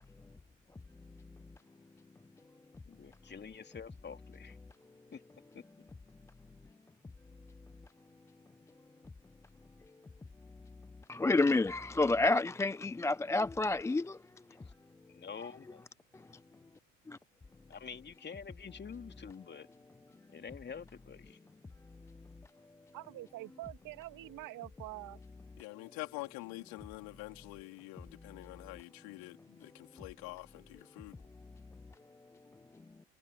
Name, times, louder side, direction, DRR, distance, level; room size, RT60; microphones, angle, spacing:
voice 1, 2.9-4.6 5.1-5.2 5.5-5.6 15.1-15.9 17.7-19.7 20.3-21.4, left 6 dB, 25° left, 2.8 m, -47 dB
voice 2, 11.1-14.2 17.1-17.2, left 3 dB, 5° left, 0.4 m, -29 dB
voice 3, 22.9-25.2, right 17 dB, 55° right, 2.7 m, -45 dB
voice 4, 25.6-31.2, left 24 dB, 60° left, 4.2 m, -46 dB
hypercardioid pair, 65°, 39 cm